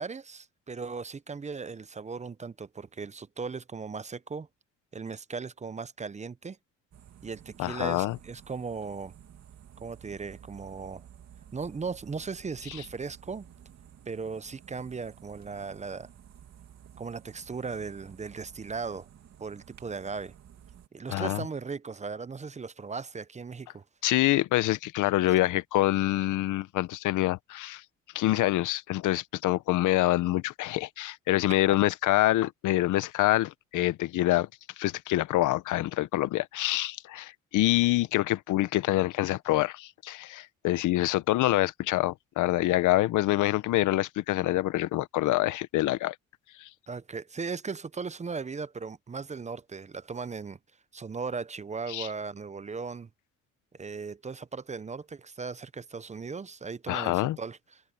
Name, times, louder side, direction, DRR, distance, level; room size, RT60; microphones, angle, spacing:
voice 1, 0.0-4.5 4.9-6.6 7.2-9.1 9.8-11.0 11.5-13.5 14.1-16.1 17.0-19.1 19.4-20.3 20.9-23.8 46.9-50.6 50.9-53.1 53.8-57.8, right 5 dB, 25° right, 0.6 m, -37 dB
sound 1, 6.9-20.9, right 9 dB, 60° right, 2.7 m, -53 dB
voice 2, 7.6-8.2 21.1-21.4 24.0-27.8 28.1-34.5 34.8-46.1 46.6-46.7 51.9-52.1 56.9-57.4, left 16 dB, 85° left, 0.8 m, -26 dB
cardioid pair, 90°, 30 cm